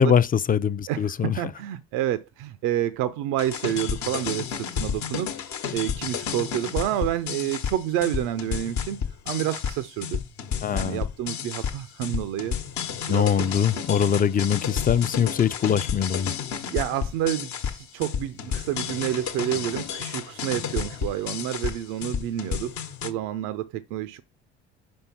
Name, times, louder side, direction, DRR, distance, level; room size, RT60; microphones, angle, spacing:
voice 1, 0.0-1.4 10.6-11.0 13.1-16.3, left 8 dB, 30° left, 0.4 m, -22 dB
voice 2, 0.9-5.3 5.7-9.0 9.3-10.2 10.7-12.6 13.1-13.2 16.7-22.7 23.0-24.2, right 12 dB, 75° right, 0.5 m, -29 dB
sound 1, 3.4-23.1, left 7 dB, 65° left, 1.1 m, -31 dB
5.4 x 5.3 x 5.8 m
hypercardioid pair, 55°, 30 cm